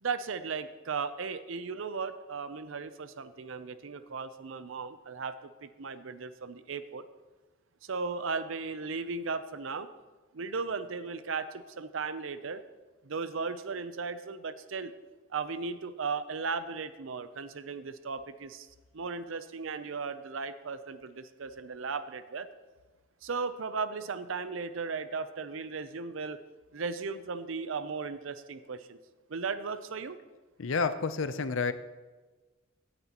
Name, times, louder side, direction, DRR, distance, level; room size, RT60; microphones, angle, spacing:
voice 1, 0.0-7.0 7.8-9.9 10.3-12.6 13.0-14.9 15.3-18.7 18.9-22.5 23.2-26.4 26.7-29.0 29.3-30.2, right 4 dB, 75° right, 12 dB, 0.6 m, -36 dB
voice 2, 30.6-31.7, left 4 dB, 70° left, 11 dB, 0.6 m, -29 dB
16.5 x 9.7 x 3.0 m, 1.3 s
head